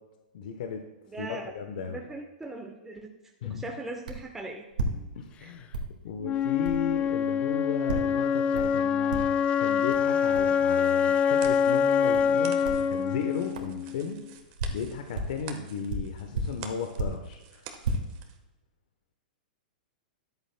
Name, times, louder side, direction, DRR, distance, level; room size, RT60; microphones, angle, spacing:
voice 1, 0.3-0.8 1.2-2.0 3.4-3.7 5.1-5.7 6.0-14.2 14.7-17.7, left 6 dB, 65° left, 4 dB, 1.0 m, -35 dB
voice 2, 1.1-1.5 1.9-3.1 3.4-4.6 5.4-5.5, right 2 dB, 10° right, 2 dB, 0.9 m, -39 dB
sound 1, 4.1-4.3 4.7-5.4 5.7-6.0 6.6-6.8 7.9-8.2 8.5-8.8 9.1-9.5 9.9-10.0 10.3-10.5 11.4-11.6 12.1-12.3 12.6-12.9 13.5-13.7 14.3-15.4 15.9-17.3 17.7-17.9, right 2 dB, 75° right, 1.8 m, -33 dB
Wind instrument woodwind instrument, 6.2-14.2, left 7 dB, 25° left, 0.3 m, -25 dB
sound 2, 10.8-18.4, right 8 dB, 45° right, 1.3 m, -49 dB
13.5 x 10.5 x 2.2 m, 1.1 s
hypercardioid pair, 115°, 5 cm